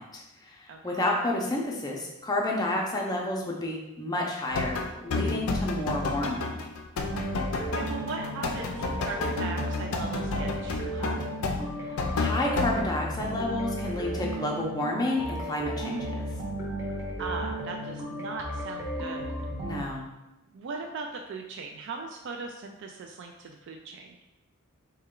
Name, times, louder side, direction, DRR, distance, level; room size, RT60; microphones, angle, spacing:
voice 1, 0.0-6.6 11.9-16.3 19.6-20.0, left 1 dB, 20° left, -1 dB, 0.6 m, -30 dB
voice 2, 0.7-1.0 7.5-11.3 17.2-19.4 20.5-24.2, right 4 dB, 55° right, 3 dB, 0.3 m, -39 dB
sound 1, 4.5-12.8, left 3 dB, 75° left, 0.4 m, -31 dB
sound 2, 7.0-19.8, right 1 dB, 15° right, 0.8 m, -34 dB
4.2 x 2.2 x 3.7 m, 0.96 s
head